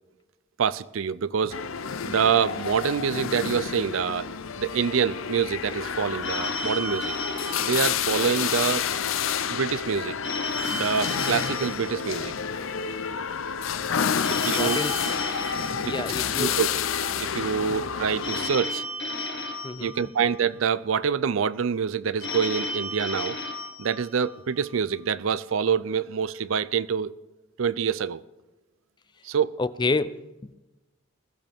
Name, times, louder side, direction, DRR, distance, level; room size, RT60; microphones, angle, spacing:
voice 1, 0.6-1.6 2.0-4.3 4.6-7.1 7.6-8.9 9.5-10.2 10.7-12.3 14.3-14.8 15.8-15.9 16.4-16.7 17.2-18.8 19.8-23.4 23.8-27.1 27.6-28.2 29.2-29.5, right 6 dB, 75° right, 17 dB, 0.5 m, -26 dB
sound 1, 1.5-18.5, left 7 dB, 80° left, 0.6 m, -29 dB
Telephone, 6.2-8.7 10.2-12.7 14.2-16.7 18.2-20.7 22.2-24.7, left 2 dB, 60° left, 1.5 m, -34 dB
voice 2, 14.5-15.0 15.8-16.6 17.6-17.8 19.6-19.9 29.6-30.2, left 3 dB, 20° left, 15 dB, 0.4 m, -28 dB
21.0 x 15.0 x 3.5 m, 1.1 s
head